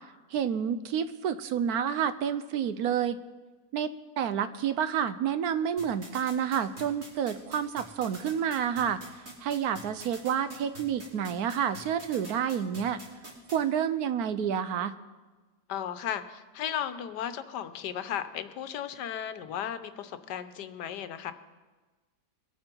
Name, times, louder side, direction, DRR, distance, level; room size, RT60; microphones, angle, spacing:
voice 1, 0.3-3.2 3.7-9.0 9.4-13.0 13.5-14.9, right 8 dB, 70° right, 12 dB, 1.1 m, -29 dB
sound 1, 5.8-13.6, right 1 dB, 50° right, 3.8 m, -45 dB
voice 2, 15.7-21.3, left 9 dB, 85° left, 11 dB, 1.4 m, -35 dB
22.5 x 8.9 x 4.5 m, 1.3 s
omnidirectional pair, 1.8 m